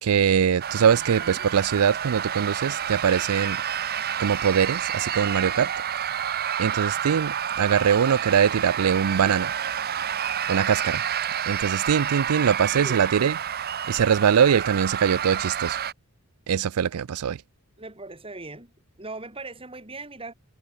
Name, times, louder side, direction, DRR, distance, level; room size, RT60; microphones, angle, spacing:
voice 1, 0.0-3.6 4.2-5.7 6.6-9.5 10.5-11.0 11.5-13.3 13.9-15.8 16.5-17.4, right 7 dB, 85° right, 0.4 m, -22 dB
sound 1, 0.6-15.9, right 9 dB, 45° right, 0.8 m, -29 dB
voice 2, 0.8-1.5 12.7-13.0 17.8-18.7 19.0-20.3, right 2 dB, 25° right, 3.7 m, -40 dB
head